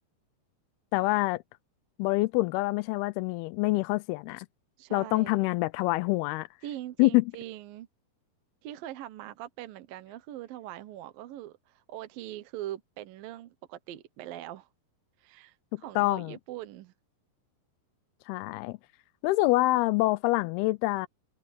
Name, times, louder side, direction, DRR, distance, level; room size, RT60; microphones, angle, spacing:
voice 1, 0.9-1.4 2.0-4.5 4.9-6.5 7.0-7.2 15.7-16.3 18.3-18.8 19.2-21.1, left 20 dB, 80° left, 2.4 m, -26 dB
voice 2, 4.8-5.5 6.6-7.9 8.6-14.7 15.2-16.9, right 13 dB, 70° right, 2.5 m, -42 dB
omnidirectional pair, 4.7 m